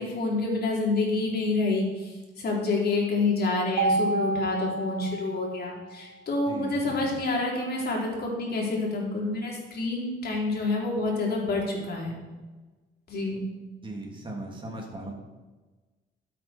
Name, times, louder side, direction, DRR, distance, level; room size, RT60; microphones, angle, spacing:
voice 1, 0.0-12.1 13.1-13.4, left 3 dB, 55° left, -2 dB, 4.1 m, -28 dB
Mallet percussion, 3.8-6.0, right 2 dB, 80° right, 1.3 m, -29 dB
voice 2, 6.4-7.1 13.8-15.1, right 1 dB, 25° right, -1 dB, 3.3 m, -38 dB
12.5 x 8.4 x 4.6 m, 1.2 s
cardioid pair, 90°, 20 cm